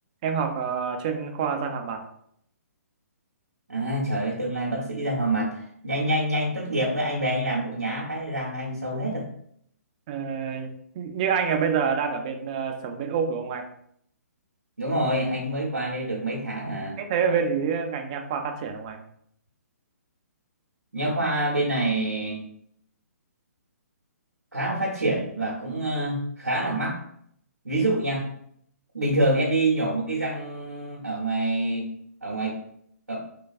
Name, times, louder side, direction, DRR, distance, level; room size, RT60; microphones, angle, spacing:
voice 1, 0.2-2.0 10.1-13.6 17.0-19.0, right 6 dB, 25° right, 5 dB, 0.3 m, -27 dB
voice 2, 3.7-9.3 14.8-17.0 20.9-22.4 24.5-27.0 27.6-28.3 28.9-31.9 32.2-32.6 33.1-33.2, right 1 dB, 85° right, -4 dB, 0.7 m, -26 dB
3.2 x 2.2 x 2.4 m, 0.69 s
figure-of-eight pair, 130°, 9 cm